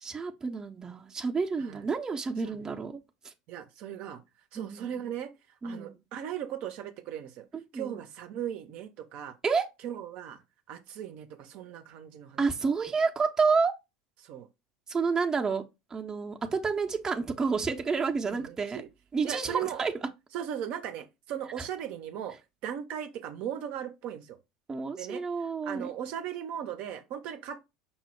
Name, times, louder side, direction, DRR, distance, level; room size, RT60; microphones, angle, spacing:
voice 1, 0.0-3.0 3.2-3.3 4.5-5.0 5.6-5.9 7.5-8.0 9.4-9.7 12.4-13.8 14.9-15.6 15.9-18.8 19.1-19.9 21.6-21.7 24.7-25.9, right 5 dB, 20° right, 0.6 m, -29 dB
voice 2, 3.5-4.2 4.5-5.3 5.6-7.5 7.7-9.3 9.8-10.4 10.7-12.4 14.2-14.5 18.3-18.9 19.2-19.8 20.3-22.4 22.6-24.4 25.0-25.2 25.6-27.6, right 10 dB, 60° right, 0.6 m, -38 dB
5.4 x 2.0 x 4.4 m
hypercardioid pair, 95°, 3 cm